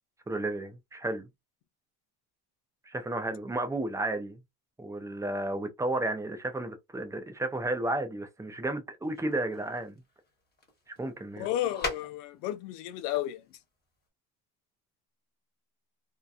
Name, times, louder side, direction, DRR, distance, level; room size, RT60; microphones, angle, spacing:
voice 1, 0.3-1.3 2.9-4.4 4.8-9.9 11.0-11.5, right 2 dB, 5° right, 0.4 m, -32 dB
sound 1, 9.0-12.6 13.0-13.6, left 2 dB, 20° left, 1.1 m, -41 dB
voice 2, 11.4-13.6, left 13 dB, 90° left, 0.6 m, -33 dB
2.7 x 2.2 x 2.3 m
supercardioid pair, 100°, 48 cm